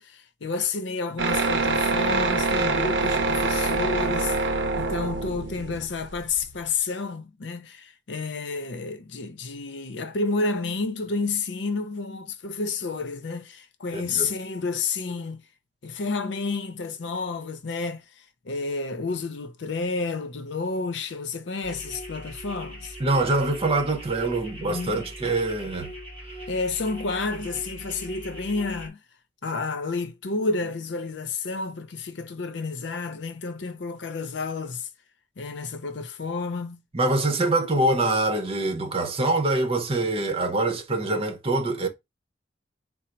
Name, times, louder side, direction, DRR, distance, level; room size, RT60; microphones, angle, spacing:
voice 1, 0.0-15.4 15.8-18.0 18.4-23.0 24.5-25.1 26.5-29.0 29.4-34.9 35.4-36.8 38.8-39.0, left 4 dB, 75° left, 0.6 m, -30 dB
sound 1, 1.2-6.6, right 3 dB, 75° right, 0.6 m, -25 dB
voice 2, 13.9-14.3 23.0-25.9 36.9-41.9, right 2 dB, 35° right, 0.8 m, -24 dB
sound 2, 21.6-28.9, equal, 10° left, 2.6 m, -40 dB
3.9 x 2.0 x 4.4 m
head